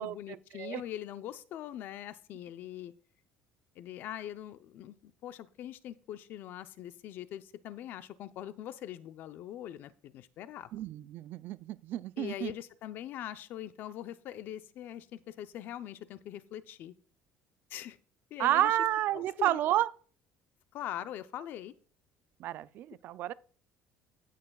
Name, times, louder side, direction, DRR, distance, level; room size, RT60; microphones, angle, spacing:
voice 1, 0.0-2.9 3.8-10.7 12.2-16.9 17.7-18.0 18.3-18.8 19.1-19.6 20.7-21.7, left 11 dB, 60° left, 0.6 m, -42 dB
voice 2, 10.7-12.5 18.4-19.9 22.4-23.3, right 13 dB, 60° right, 0.4 m, -30 dB
16.5 x 6.7 x 2.3 m
cardioid pair, 110°, 4 cm